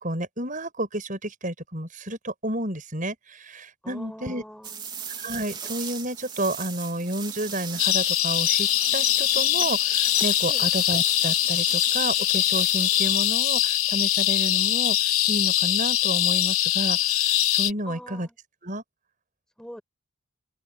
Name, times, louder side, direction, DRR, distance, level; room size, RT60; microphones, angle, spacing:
voice 1, 0.0-4.4 5.2-18.3 18.6-18.8, right 1 dB, 35° right, 7.5 m, -31 dB
voice 2, 3.8-4.8 10.5-10.7 17.8-18.4 19.6-19.8, equal, 5° left, 5.7 m, -42 dB
sound 1, 4.6-13.4, right 7 dB, 20° right, 4.0 m, -37 dB
sound 2, 7.8-17.7, left 13 dB, 75° left, 1.2 m, -23 dB
open air
head